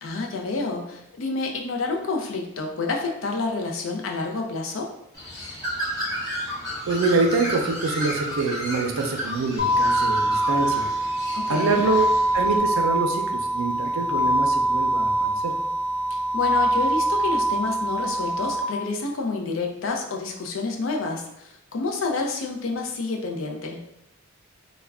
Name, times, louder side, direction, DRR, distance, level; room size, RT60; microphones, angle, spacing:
voice 1, 0.0-4.9 11.3-11.8 16.1-23.8, left 3 dB, 70° left, 2 dB, 0.5 m, -29 dB
Bird, 5.1-12.6, equal, 20° left, 0.7 m, -32 dB
voice 2, 6.9-10.9 11.5-12.1 12.3-15.5, right 3 dB, 80° right, 3 dB, 0.4 m, -25 dB
sound 1, 9.6-18.6, right 1 dB, 45° left, 1.1 m, -23 dB
2.3 x 2.1 x 3.3 m, 0.83 s
head